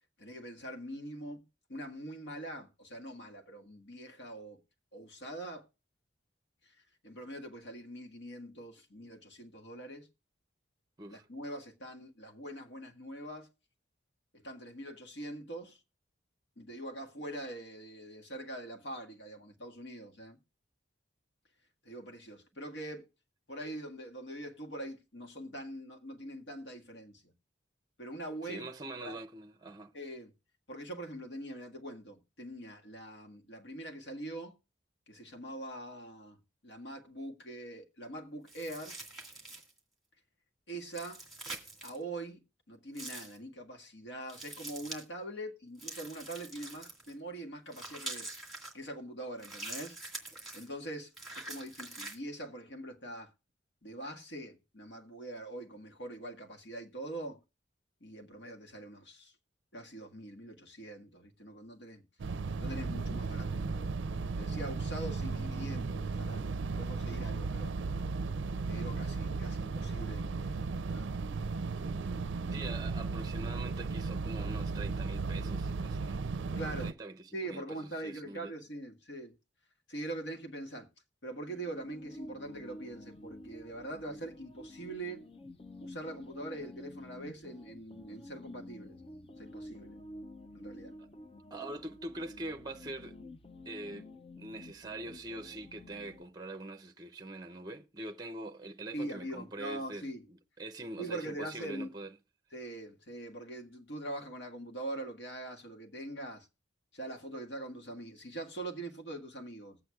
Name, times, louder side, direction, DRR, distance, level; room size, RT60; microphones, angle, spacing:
voice 1, 0.2-1.4 1.7-4.6 4.9-5.7 6.6-10.1 11.1-13.5 14.3-15.8 16.6-20.4 21.8-23.1 23.5-27.3 28.0-28.7 29.0-29.2 29.9-30.3 30.7-34.6 35.1-39.0 40.7-41.2 41.8-42.4 42.7-48.3 48.7-50.0 50.5-53.3 53.8-57.4 58.0-59.3 59.7-62.0 62.6-63.9 64.4-66.4 66.8-67.8 68.7-71.4 71.7-72.7 76.5-76.9 77.3-79.3 79.9-80.9 81.2-85.2 85.8-89.0 89.4-90.0 90.5-90.9 98.9-100.2 101.0-101.9 102.5-106.5 106.9-109.8, right 1 dB, 75° left, 1.7 m, -43 dB
voice 2, 28.4-29.9 72.5-77.8 78.0-78.5 91.0-91.1 91.5-93.2 93.7-94.1 94.4-102.1, right 2 dB, 20° right, 0.6 m, -44 dB
sound 1, 38.5-39.8 40.9-42.0 42.9-43.4 44.3-45.0 45.8-47.1 47.7-48.7 49.4-50.7 51.1-52.2, right 2 dB, ahead, 2.0 m, -44 dB
sound 2, 62.2-76.9, right 4 dB, 75° right, 0.4 m, -35 dB
sound 3, 81.5-96.2, left 1 dB, 30° left, 0.5 m, -50 dB
20.0 x 8.0 x 2.3 m
head